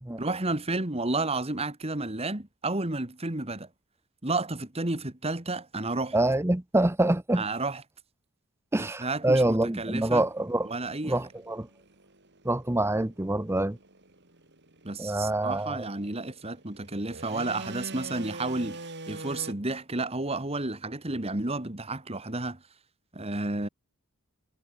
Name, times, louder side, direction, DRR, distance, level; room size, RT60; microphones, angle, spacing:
voice 1, 0.2-3.7 4.2-6.2 7.4-7.8 8.8-10.2 10.7-11.2 14.8-22.6 23.1-23.7, right 2 dB, 25° right, 1.9 m, -31 dB
voice 2, 6.1-7.4 8.7-10.7 11.0-11.7 12.4-13.8 15.0-15.8, right 1 dB, 10° right, 0.7 m, -26 dB
sound 1, 9.8-19.5, right 2 dB, 50° right, 5.1 m, -45 dB
head